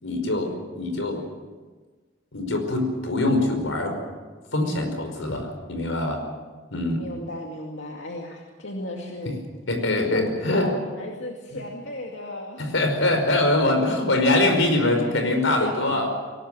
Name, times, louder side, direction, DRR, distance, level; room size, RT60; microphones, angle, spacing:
voice 1, 0.0-1.3 2.3-4.0 4.5-6.2 6.7-7.1 9.3-9.4 9.7-10.7 11.5-11.6 12.6-16.1, left 2 dB, 90° left, 5 dB, 5.2 m, -23 dB
voice 2, 7.0-9.4 9.9-12.7 14.7-16.1, left 2 dB, 70° left, 0 dB, 2.4 m, -35 dB
22.5 x 19.5 x 7.7 m, 1.4 s
head